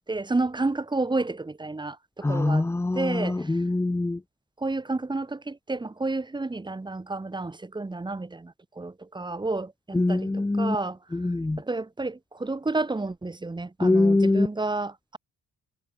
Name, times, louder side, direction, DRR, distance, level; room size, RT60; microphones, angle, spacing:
voice 1, 0.0-2.7 2.9-3.6 4.6-11.0 11.6-15.2, right 3 dB, 15° right, 1.3 m, -30 dB
voice 2, 2.2-4.2 9.9-10.8 11.1-11.6 13.8-14.5, left 2 dB, 10° left, 0.6 m, -23 dB
cardioid pair, 90°, 30 cm